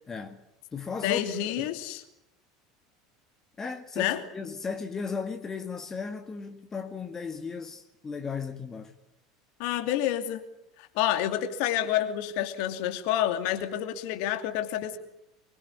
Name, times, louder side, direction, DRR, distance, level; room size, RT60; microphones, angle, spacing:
voice 1, 0.1-0.4 0.7-1.7 3.6-8.9, left 5 dB, 20° left, 2.0 m, -36 dB
voice 2, 1.0-2.0 4.0-4.2 9.6-10.4 10.8-15.0, left 12 dB, 55° left, 2.7 m, -28 dB
25.0 x 22.5 x 9.7 m
figure-of-eight pair, 75°, 2 cm